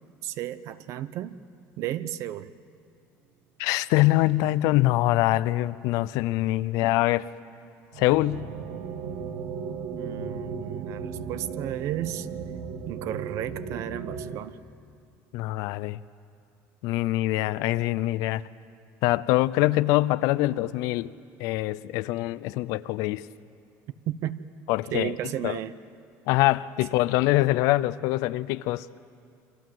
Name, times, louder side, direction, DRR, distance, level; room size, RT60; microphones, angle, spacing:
voice 1, 0.2-1.4 1.8-2.5 9.9-12.3 12.9-14.6 24.1-24.4 24.9-25.7, right 12 dB, 55° right, 15 dB, 0.9 m, -33 dB
voice 2, 3.6-7.3 8.0-8.4 15.3-16.0 16.8-18.4 19.0-21.1 21.4-23.3 24.7-25.1 25.4-25.6 26.3-28.9, left 17 dB, 70° left, 17 dB, 0.6 m, -24 dB
sound 1, 7.9-14.4, right 6 dB, 75° right, 2.2 m, -36 dB
29.5 x 24.5 x 7.8 m, 2.4 s
cardioid pair, 160°, 6 cm